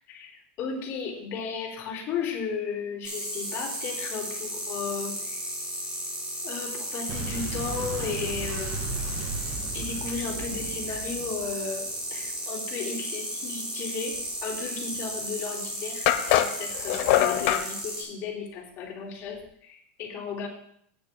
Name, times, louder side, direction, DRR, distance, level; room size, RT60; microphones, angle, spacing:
voice 1, 0.6-5.5 6.4-9.0 9.7-20.5, left 5 dB, 40° left, -2 dB, 3.3 m, -35 dB
sound 1, 3.0-18.0, right 1 dB, 15° right, 4.2 m, -34 dB
Boom, 7.1-12.3, right 4 dB, 40° right, 2.4 m, -36 dB
sound 2, 15.2-15.3 16.1-17.7, left 13 dB, 60° left, 0.8 m, -23 dB
16.0 x 9.8 x 2.3 m, 0.68 s
supercardioid pair, 150°, 6 cm